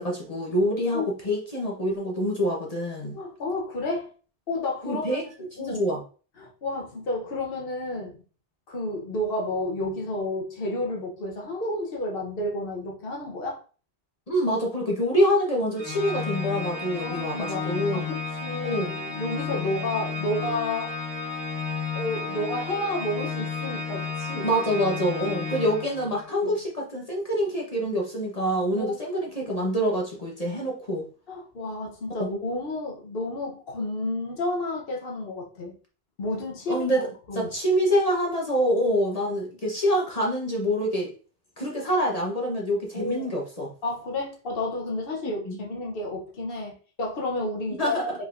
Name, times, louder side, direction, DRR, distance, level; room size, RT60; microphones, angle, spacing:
voice 1, 0.0-3.2 4.8-5.2 5.6-6.0 14.3-18.1 18.6-18.9 24.4-31.0 32.2-32.3 36.7-41.1 41.6-43.7 45.2-45.6 47.8-48.0, equal, 35° left, -2 dB, 1.1 m, -26 dB
voice 2, 3.1-4.1 4.5-5.2 5.6-5.9 6.4-8.2 8.7-13.6 17.0-20.9 21.9-24.5 26.4-26.5 28.7-29.0 31.3-35.8 36.2-37.5 42.9-43.3 43.8-48.1, left 2 dB, 60° left, -1 dB, 1.2 m, -31 dB
Organ, 15.8-26.4, left 4 dB, 10° left, 2.5 m, -32 dB
5.4 x 3.8 x 2.5 m, 0.38 s
omnidirectional pair, 1.1 m